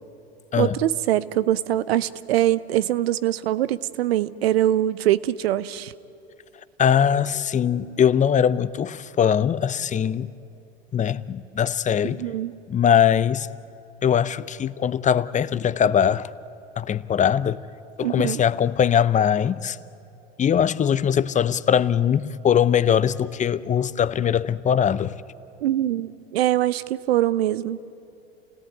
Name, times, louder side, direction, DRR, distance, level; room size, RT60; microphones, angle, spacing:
voice 1, 0.6-5.9 12.2-12.5 18.0-18.4 25.6-27.8, right 13 dB, 75° right, 0.8 m, -23 dB
voice 2, 6.8-10.3 10.9-12.3 12.7-13.5 14.0-16.3 16.8-17.7 18.0-19.8 20.4-25.1, left 8 dB, 25° left, 0.7 m, -21 dB
29.0 x 17.5 x 9.4 m
hypercardioid pair, 85°, 31 cm